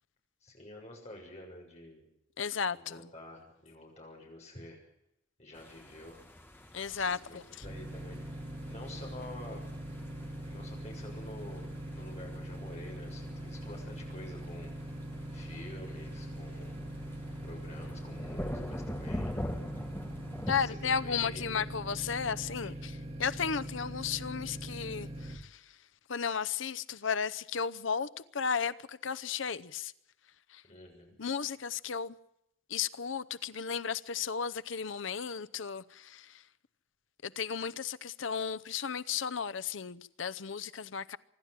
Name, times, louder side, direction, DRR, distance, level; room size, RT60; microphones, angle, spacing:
voice 1, 0.4-2.1 2.8-4.8 5.4-6.2 6.9-8.2 8.7-9.6 10.4-14.7 15.3-16.8 17.4-19.3 20.6-21.6 22.6-22.7 30.7-31.2, left 1 dB, 35° left, 7.1 m, -49 dB
voice 2, 2.4-3.0 6.7-7.4 20.5-25.6 26.1-29.9 30.5-30.6 31.2-32.2 32.7-36.4 37.2-41.2, left 6 dB, 85° left, 0.8 m, -34 dB
sound 1, 5.5-20.7, equal, 10° left, 1.9 m, -44 dB
sound 2, 7.6-25.4, right 1 dB, 30° right, 2.3 m, -42 dB
25.5 x 12.0 x 9.0 m
head